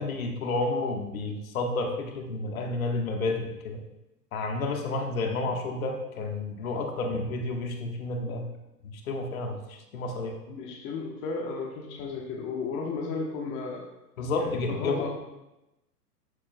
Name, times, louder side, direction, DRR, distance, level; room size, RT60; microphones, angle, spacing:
voice 1, 0.0-3.8 4.3-8.5 8.8-10.3 14.2-15.0, left 2 dB, 55° left, 3 dB, 1.5 m, -30 dB
voice 2, 10.5-13.9 14.3-15.1, left 4 dB, 25° left, 2 dB, 1.2 m, -34 dB
13.5 x 8.6 x 2.3 m, 0.95 s
figure-of-eight pair, 110°, 49 cm